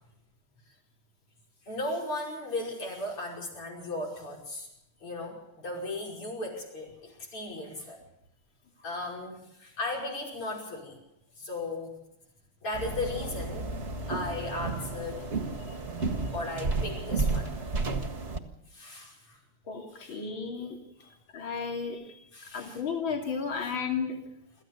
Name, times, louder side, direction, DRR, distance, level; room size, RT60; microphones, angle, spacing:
voice 1, 1.7-4.7 5.0-8.0 8.8-11.0 11.4-12.0 12.6-13.7 14.1-15.3 16.3-17.5 18.7-19.4 19.9-20.2 22.3-22.8 23.6-23.7, left 2 dB, 90° left, -2 dB, 6.5 m, -36 dB
sound 1, 12.7-18.4, right 3 dB, 30° right, 1.9 m, -32 dB
voice 2, 19.7-20.8 21.3-22.1 22.5-24.2, left 5 dB, 65° left, 1 dB, 3.6 m, -33 dB
27.0 x 14.5 x 6.8 m, 0.81 s
omnidirectional pair, 2.4 m